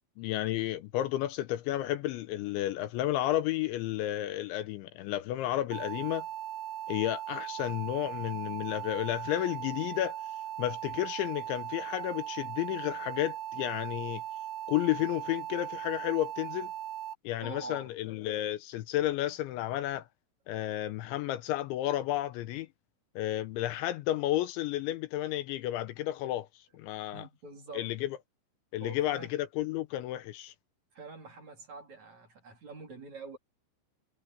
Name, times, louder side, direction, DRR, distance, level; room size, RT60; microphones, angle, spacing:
voice 1, 0.2-6.3 6.9-10.2 10.6-14.2 14.7-16.7 17.2-20.1 20.5-22.7 23.2-26.5 26.8-27.2 27.7-28.2 28.7-30.5, left 14 dB, 80° left, 3.1 m, -32 dB
sound 1, 5.7-17.1, right 12 dB, 70° right, 3.1 m, -39 dB
voice 2, 17.4-17.9 27.1-27.9 28.8-29.4 30.9-33.4, right 3 dB, 40° right, 4.9 m, -45 dB
omnidirectional pair, 5.6 m